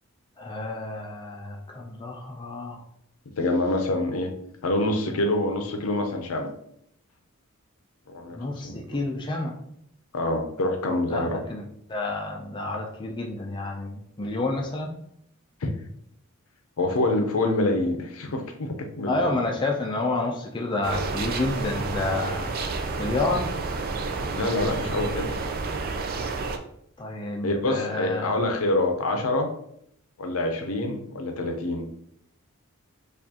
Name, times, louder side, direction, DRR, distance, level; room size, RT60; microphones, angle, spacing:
voice 1, 0.4-2.8 8.3-9.6 11.1-14.9 19.1-22.5 23.0-23.5 27.0-28.4, left 2 dB, 20° left, 0 dB, 0.4 m, -29 dB
voice 2, 3.4-4.3 4.6-6.5 8.1-8.4 8.6-8.8 10.1-11.4 12.7-12.8 15.6-15.7 16.8-19.3 24.3-25.3 27.4-29.5 30.2-31.9, left 2 dB, 75° left, 4 dB, 0.6 m, -26 dB
sound 1, 20.8-26.6, right 3 dB, 45° right, 0.4 m, -30 dB
4.5 x 2.5 x 2.8 m, 0.71 s
head